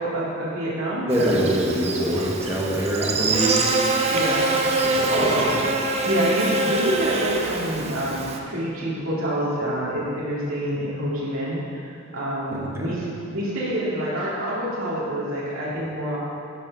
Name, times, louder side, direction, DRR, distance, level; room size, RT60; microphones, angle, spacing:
voice 1, 0.0-1.5 4.1-4.6 4.9-5.5 6.0-16.2, right 1 dB, 80° right, -7 dB, 2.6 m, -27 dB
voice 2, 1.1-3.6 4.8-5.3 12.5-13.0, right 1 dB, 15° right, -4 dB, 1.5 m, -24 dB
Buzz, 1.1-8.4, right 3 dB, 30° right, 0.8 m, -25 dB
11.0 x 5.6 x 5.3 m, 2.4 s
head